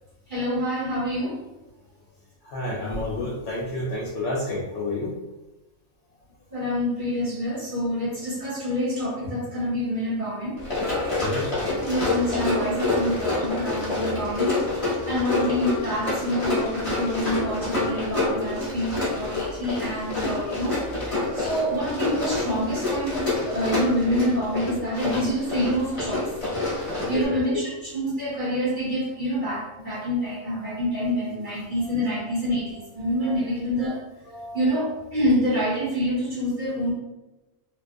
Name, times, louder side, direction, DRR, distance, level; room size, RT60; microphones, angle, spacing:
voice 1, 0.3-1.4 6.5-10.6 11.8-26.3 26.9-34.0 34.5-36.9, equal, 40° right, -8 dB, 1.1 m, -27 dB
voice 2, 2.4-5.1 11.2-11.5 27.1-27.6 28.2-28.3 29.3-29.4 29.9-30.3 31.3-34.7, left 2 dB, 70° left, -5 dB, 0.9 m, -32 dB
Run, 10.6-27.3, left 2 dB, 30° left, 0.8 m, -27 dB
2.4 x 2.2 x 2.5 m, 1.1 s
omnidirectional pair, 1.4 m